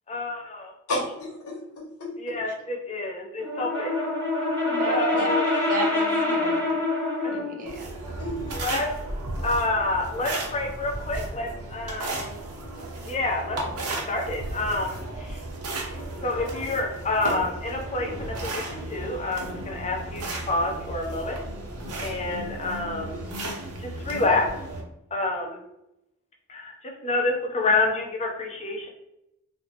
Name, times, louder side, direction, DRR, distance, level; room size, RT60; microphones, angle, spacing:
voice 1, 0.1-0.7 2.2-4.0 4.9-5.4 7.2-7.3 8.6-8.9 9.4-12.4 13.0-15.4 16.2-21.4 22.0-23.5 23.8-24.4 25.1-25.6 26.5-26.7 27.0-28.9, left 2 dB, 30° left, 1 dB, 0.6 m, -28 dB
voice 2, 0.9-2.4 5.1-5.2 7.6-7.8 8.2-8.8, left 1 dB, 75° left, -2 dB, 1.0 m, -33 dB
Brass instrument, 3.4-7.6, left 2 dB, 5° left, 1.0 m, -25 dB
voice 3, 4.7-5.3 5.7-6.8 7.3-8.2, right 2 dB, 40° right, 3 dB, 0.5 m, -33 dB
sound 1, 7.7-24.8, right 2 dB, 90° right, 0.8 m, -34 dB
4.1 x 2.0 x 2.9 m, 0.84 s
head